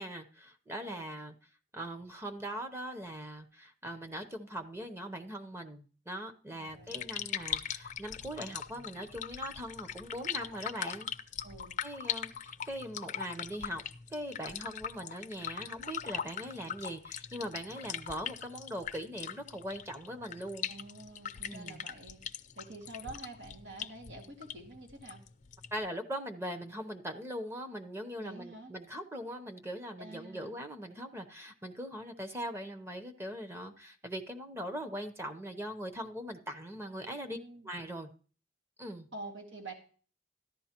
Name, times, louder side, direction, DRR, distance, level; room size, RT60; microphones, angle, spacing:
voice 1, 0.0-1.3 1.7-11.1 11.8-13.8 14.1-20.7 21.5-21.8 25.7-37.4 37.6-38.1 38.8-39.1, equal, 15° right, 6 dB, 0.7 m, -41 dB
voice 2, 6.5-7.0 11.4-11.7 20.7-25.2 28.2-28.7 30.0-30.6 37.3-37.7 39.1-39.7, right 2 dB, 90° right, 1 dB, 2.1 m, -48 dB
sound 1, 6.7-25.8, left 8 dB, 40° left, 0.5 m, -41 dB
13.5 x 11.0 x 2.9 m, 0.40 s
head